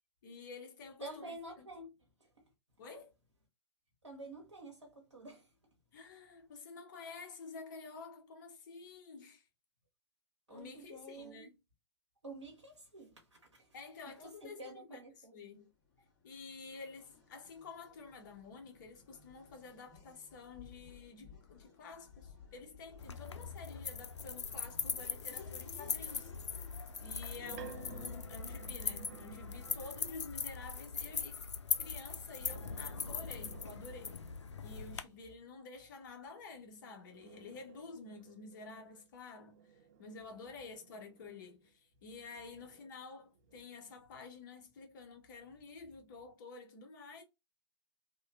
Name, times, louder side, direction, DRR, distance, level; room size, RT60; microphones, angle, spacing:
voice 1, 0.2-1.7 2.8-3.1 5.9-9.4 10.5-11.6 13.7-14.6 14.9-15.0 15.3-15.7 16.2-26.3 27.0-31.5 31.8-34.2 34.6-47.2, left 4 dB, 45° left, 0.8 m, -50 dB
voice 2, 1.0-2.5 4.0-5.6 10.5-11.5 12.2-13.8 14.0-15.4 40.4-40.7, right 1 dB, 90° right, 0.8 m, -50 dB
Race car auto racing / Accelerating revving vroom, 15.4-31.1, left 7 dB, 25° left, 1.6 m, -60 dB
sound 1, 23.0-35.0, left 5 dB, 80° left, 0.4 m, -41 dB
sound 2, 26.9-30.3 32.2-34.6 36.5-41.7 42.3-44.0, right 8 dB, 35° right, 0.4 m, -56 dB
2.9 x 2.2 x 2.3 m
figure-of-eight pair, 120°, 15 cm